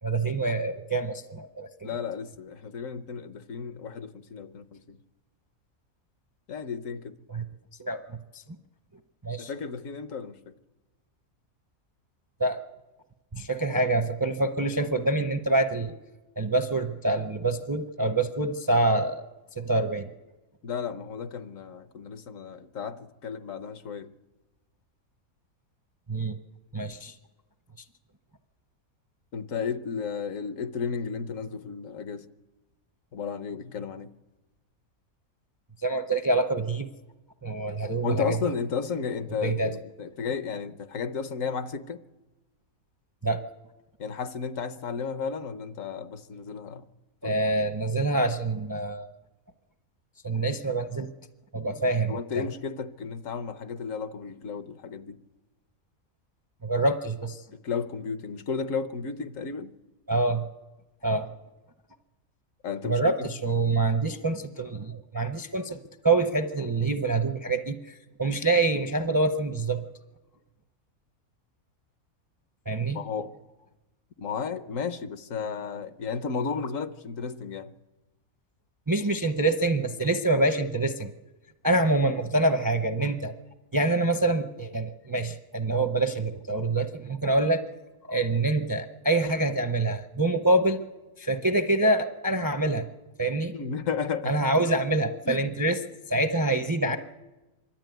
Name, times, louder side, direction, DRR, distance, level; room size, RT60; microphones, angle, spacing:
voice 1, 0.0-1.9 7.3-7.4 7.8-8.4 9.2-9.5 12.4-12.6 13.3-15.9 16.4-19.2 19.6-20.1 26.1-26.4 26.7-27.1 35.8-36.9 37.4-38.3 39.4-39.7 43.2-43.4 47.2-49.1 50.2-51.1 51.5-52.4 56.6-57.4 60.1-60.4 61.0-61.3 62.8-69.8 72.7-73.0 78.9-81.1 81.6-83.3 83.7-87.6 88.1-90.8 91.2-92.9 93.2-93.5 94.2-95.8 96.1-97.0, right 2 dB, 25° right, 8 dB, 0.5 m, -26 dB
voice 2, 1.8-5.0 6.5-7.1 9.4-10.5 20.6-24.1 29.3-32.2 33.1-34.1 38.0-42.0 44.0-46.8 47.2-47.3 52.1-55.2 57.6-59.7 62.6-63.3 72.9-73.3 74.2-77.7 93.5-94.4 95.3-95.5, left 6 dB, 70° left, 12 dB, 1.2 m, -33 dB
25.0 x 12.0 x 9.2 m, 1.1 s
omnidirectional pair, 1.5 m